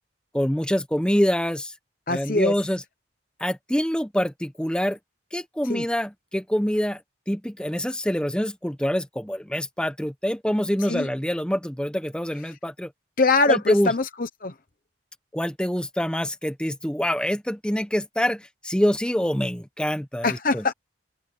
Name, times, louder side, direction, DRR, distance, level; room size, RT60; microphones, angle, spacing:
voice 1, 0.3-1.7 2.1-2.8 3.4-5.0 5.3-7.0 7.3-12.9 13.5-13.9 15.3-20.6, equal, 5° left, 0.9 m, -25 dB
voice 2, 2.1-2.5 5.6-5.8 10.8-11.1 12.5-12.6 13.2-14.5 20.2-20.7, left 3 dB, 45° left, 0.9 m, -23 dB
open air
head